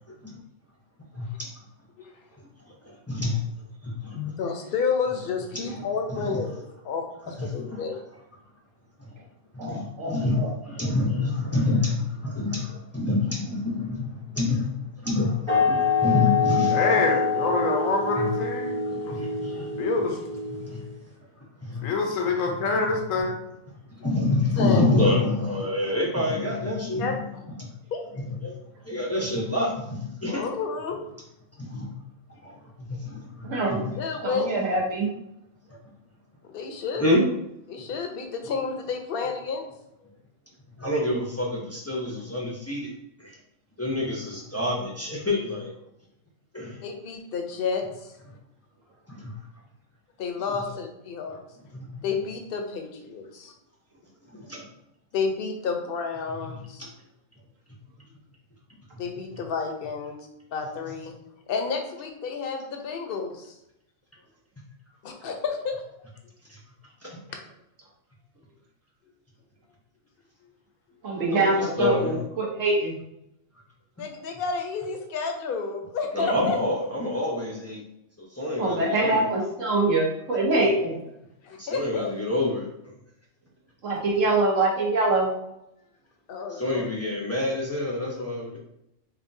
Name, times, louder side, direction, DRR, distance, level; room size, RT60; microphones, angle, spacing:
voice 1, 1.1-1.5 2.7-3.4 3.8-4.2 5.5-5.8 6.1-6.4 7.4-7.8 9.0-9.1 9.5-14.7 15.0-17.0 18.2-18.3 18.8-19.8 20.6-20.8 21.6-21.9 24.0-27.2 27.5-27.7 28.2-28.6 28.8-30.4 31.6-31.9 32.4-34.0 37.0-37.2 40.8-42.9 43.2-43.4 43.8-45.7 46.5-46.8 49.1-49.3 50.5-50.6 51.7-52.0 54.3-54.6 56.5-56.9 66.5-66.6 67.0-67.2 71.3-72.2 76.1-77.8 78.2-79.3 80.6-80.7 81.5-82.7 86.5-88.6, left 2 dB, 20° left, -4 dB, 0.4 m, -27 dB
voice 2, 4.4-6.6 6.8-8.0 24.6-24.8 27.0-27.4 27.9-28.1 30.3-31.0 34.0-34.5 36.4-37.1 37.7-39.6 46.8-48.1 50.2-51.4 52.0-53.5 55.1-56.8 59.0-60.2 60.5-61.1 61.5-63.6 65.0-65.8 74.0-76.6 81.5-82.1 86.3-86.8, left 5 dB, 55° left, 3 dB, 0.8 m, -30 dB
voice 3, 9.6-10.5 33.4-33.8 34.2-35.1 71.0-72.0 72.4-72.9 78.6-81.0 83.8-85.3, right 2 dB, 75° right, -3 dB, 1.4 m, -24 dB
sound 1, 15.5-20.9, left 5 dB, 25° right, 1.0 m, -26 dB
voice 4, 16.7-18.8 19.1-19.3 19.8-20.2 21.8-23.3, left 3 dB, 85° left, 2 dB, 1.1 m, -26 dB
5.5 x 2.3 x 2.6 m, 0.82 s
omnidirectional pair, 1.3 m